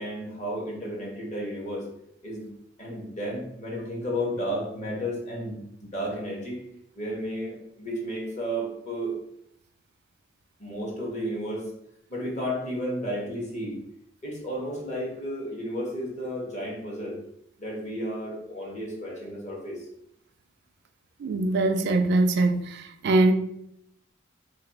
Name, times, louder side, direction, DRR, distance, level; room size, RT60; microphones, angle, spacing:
voice 1, 0.0-1.9 2.2-2.5 2.8-6.6 6.9-9.2 10.6-11.7 12.1-13.7 14.2-17.2 17.6-19.8, equal, 35° left, 1.1 m, -32 dB
voice 2, 21.2-23.3, right 2 dB, 55° right, 0.3 m, -22 dB
3.2 x 2.3 x 4.1 m
head